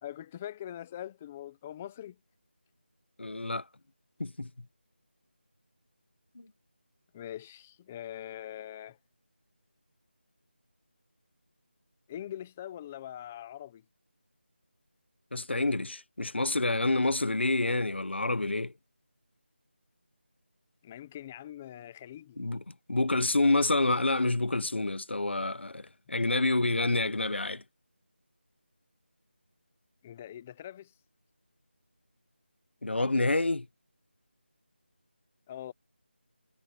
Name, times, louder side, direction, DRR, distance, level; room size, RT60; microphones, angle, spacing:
voice 1, 0.0-2.2 7.1-9.0 12.1-13.8 20.8-22.4 30.0-30.9 35.5-35.7, left 11 dB, 5° left, 0.6 m, -42 dB
voice 2, 3.2-3.6 4.2-4.5 6.3-6.5 15.3-18.7 22.4-27.6 32.8-33.7, left 2 dB, 75° left, 1.2 m, -28 dB
figure-of-eight pair, 175°, 6 cm